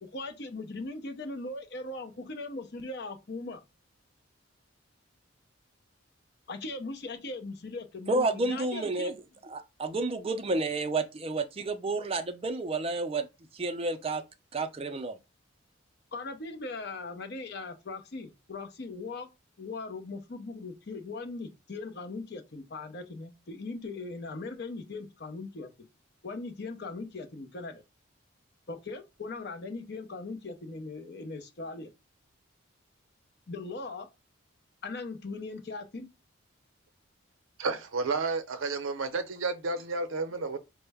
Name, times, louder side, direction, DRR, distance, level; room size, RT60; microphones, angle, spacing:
voice 1, 0.0-3.6 6.5-9.2 16.1-19.3 19.6-25.7 26.2-27.8 28.7-31.9 33.5-34.1 34.8-36.1 40.4-40.5, left 3 dB, 55° left, 0.6 m, -39 dB
voice 2, 8.1-9.1 9.5-13.3 13.5-14.2 14.5-15.2, right 3 dB, 30° right, 0.4 m, -30 dB
voice 3, 37.6-40.6, right 3 dB, 80° right, 0.6 m, -31 dB
4.5 x 2.1 x 3.4 m
head